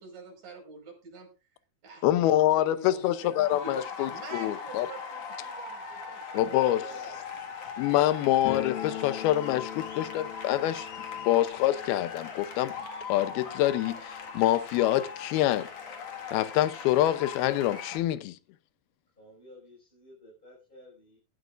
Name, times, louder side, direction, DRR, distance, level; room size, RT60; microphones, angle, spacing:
voice 1, 0.0-2.1 2.5-7.2, right 3 dB, 55° right, 6.5 m, -47 dB
voice 2, 2.0-4.9 6.3-6.8 7.8-10.9 11.3-12.7 13.1-15.7 16.3-18.4, left 13 dB, 90° left, 2.7 m, -26 dB
sound 1, 3.0-18.0, left 5 dB, 50° left, 2.6 m, -40 dB
voice 3, 6.3-7.2 19.2-21.2, right 1 dB, 10° left, 5.8 m, -51 dB
sound 2, 8.5-15.2 15.4-15.5 15.8-15.9 16.6-16.7 17.0-18.2, left 11 dB, 75° left, 3.3 m, -42 dB
19.0 x 12.5 x 2.5 m
omnidirectional pair, 4.3 m